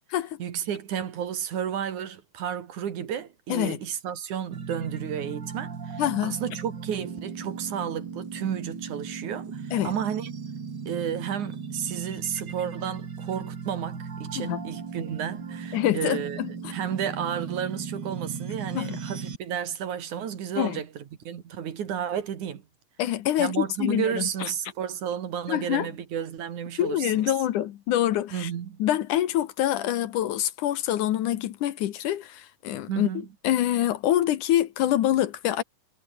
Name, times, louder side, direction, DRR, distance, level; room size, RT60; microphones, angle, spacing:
voice 1, 0.4-10.3 10.9-16.4 16.6-22.6 23.4-27.3 28.3-28.8 32.9-33.3, right 9 dB, 65° right, 3.3 m, -32 dB
sound 1, 4.5-19.4, right 5 dB, 35° right, 2.6 m, -37 dB
voice 2, 6.0-6.4 9.7-9.9 14.4-14.6 15.7-16.7 18.7-19.0 20.6-20.8 23.0-24.5 25.5-25.9 26.8-28.5 28.8-33.1 33.4-35.6, left 12 dB, 70° left, 2.5 m, -26 dB
omnidirectional pair, 3.9 m